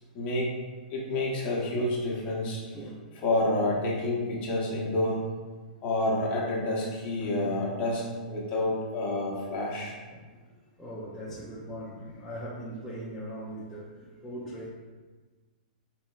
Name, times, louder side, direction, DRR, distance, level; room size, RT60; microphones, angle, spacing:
voice 1, 0.1-0.5 0.9-2.8 3.2-5.2 5.8-9.9, left 2 dB, 25° left, -4 dB, 0.8 m, -29 dB
voice 2, 2.7-3.0 4.1-4.2 7.2-7.3 10.1-10.3 10.8-14.7, right 1 dB, 5° left, -9 dB, 0.4 m, -40 dB
4.2 x 2.7 x 2.3 m, 1.4 s
hypercardioid pair, 145°, 5 cm